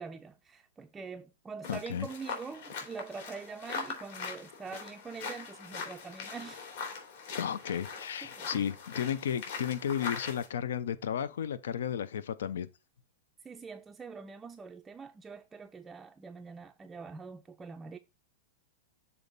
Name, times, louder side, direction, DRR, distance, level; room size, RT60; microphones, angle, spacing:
voice 1, 0.0-6.7 8.2-8.6 13.4-18.0, right 5 dB, 15° right, 0.4 m, -44 dB
sound 1, 1.6-10.5, left 5 dB, 65° left, 2.9 m, -41 dB
voice 2, 1.7-2.1 7.3-12.7, left 9 dB, 85° left, 0.5 m, -33 dB
6.9 x 4.1 x 3.9 m
supercardioid pair, 145°, 0 cm